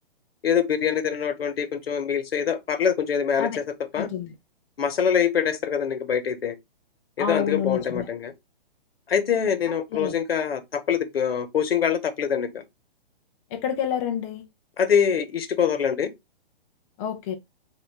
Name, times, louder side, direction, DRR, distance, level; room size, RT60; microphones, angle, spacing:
voice 1, 0.4-3.6 3.9-4.1 4.8-6.5 7.2-8.3 9.1-12.6 14.8-16.1, left 7 dB, 80° left, 1.0 m, -24 dB
voice 2, 3.9-4.3 7.2-8.1 9.9-10.1 13.5-14.5 17.0-17.3, left 8 dB, 15° left, 0.4 m, -28 dB
4.0 x 2.5 x 3.4 m
hypercardioid pair, 140°, 29 cm